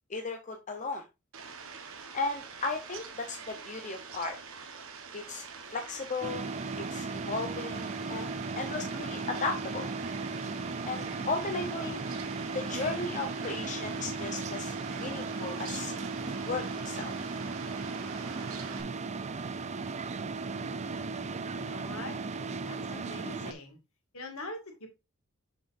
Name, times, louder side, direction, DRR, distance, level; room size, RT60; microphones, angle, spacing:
voice 1, 0.1-1.0 2.1-4.4 5.1-5.4 5.7-6.5 6.8-9.9 10.9-12.0 12.5-15.9 16.4-17.1, left 3 dB, 35° left, 4 dB, 0.8 m, -35 dB
Fowl, 1.3-18.8, right 5 dB, 65° right, 1.3 m, -45 dB
sound 1, 6.2-23.5, right 4 dB, 30° right, 0.5 m, -36 dB
voice 2, 21.5-22.2 22.6-23.8 24.1-24.9, left 2 dB, 70° left, 3 dB, 2.1 m, -42 dB
6.8 x 6.1 x 2.6 m, 0.25 s
head